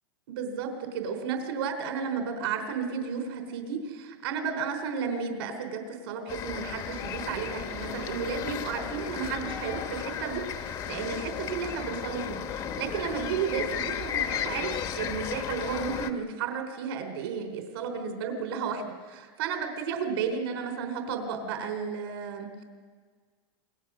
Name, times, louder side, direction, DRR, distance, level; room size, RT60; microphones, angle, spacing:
voice 1, 0.3-22.6, right 6 dB, 75° right, 5 dB, 4.0 m, -33 dB
sound 1, 6.3-16.1, left 8 dB, 30° left, 1.2 m, -34 dB
28.0 x 21.5 x 6.4 m, 1.5 s
supercardioid pair, 160°, 13 cm